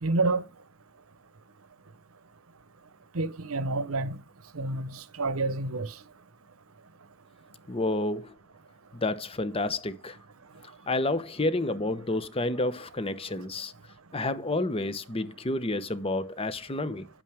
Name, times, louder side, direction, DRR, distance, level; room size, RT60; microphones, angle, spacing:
voice 1, 0.0-0.4 3.1-4.2 4.5-6.0, right 3 dB, 85° right, 1.0 m, -28 dB
voice 2, 7.7-8.3 8.9-10.2 10.9-13.7 14.1-17.1, left 2 dB, 25° left, 0.9 m, -30 dB
10.0 x 8.7 x 3.5 m
head